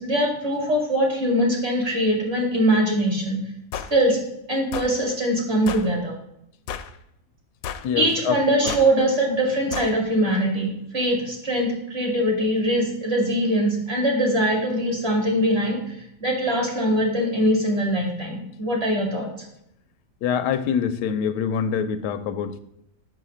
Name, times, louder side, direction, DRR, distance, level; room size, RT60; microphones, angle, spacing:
voice 1, 0.0-3.4 3.9-4.2 4.5-6.1 8.0-19.3, right 1 dB, 40° right, 0 dB, 2.5 m, -22 dB
sound 1, 3.7-3.9 4.7-4.9 5.7-5.9 6.7-7.0 7.6-7.9 8.7-8.9 9.7-9.9, left 8 dB, 70° left, 1.0 m, -32 dB
voice 2, 7.8-8.4 20.2-22.6, left 7 dB, 85° left, 11 dB, 1.2 m, -25 dB
6.4 x 5.7 x 6.2 m, 0.79 s
omnidirectional pair, 1.8 m